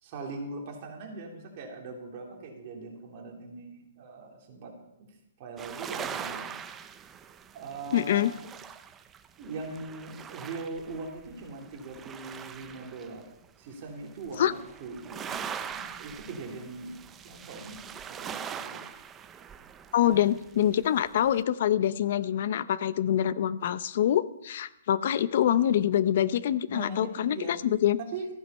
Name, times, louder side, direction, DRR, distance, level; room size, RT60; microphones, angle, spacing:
voice 1, 0.0-4.7 5.4-6.7 7.5-8.4 9.4-13.3 13.6-18.8 20.0-20.2 26.7-27.6 28.1-28.3, right 3 dB, 35° right, 0 dB, 3.0 m, -41 dB
sound 1, 5.6-13.5 14.0-21.4, right 8 dB, 15° right, 0.5 m, -42 dB
voice 2, 7.9-8.3 14.4-14.5 19.9-28.0, left 11 dB, 50° left, 16 dB, 0.6 m, -25 dB
14.5 x 9.2 x 5.5 m, 0.85 s
hypercardioid pair, 165°, 0 cm